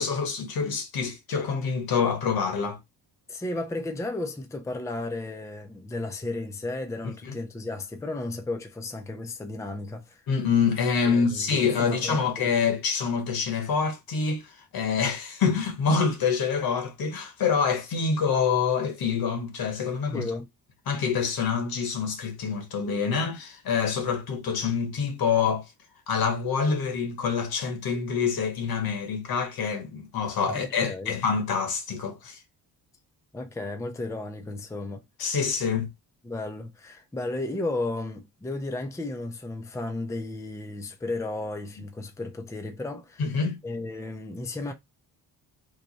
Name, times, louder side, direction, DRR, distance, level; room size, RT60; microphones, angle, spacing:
voice 1, 0.0-2.8 7.2-7.3 10.3-20.3 20.9-25.7 26.1-32.4 35.2-35.9 43.2-43.6, left 6 dB, 65° left, 1.2 m, -26 dB
voice 2, 3.3-10.2 11.1-12.2 20.1-20.5 30.5-31.2 33.3-35.0 36.2-43.4 43.6-44.7, left 2 dB, 10° left, 0.5 m, -34 dB
3.1 x 2.2 x 4.0 m
cardioid pair, 90°, 38 cm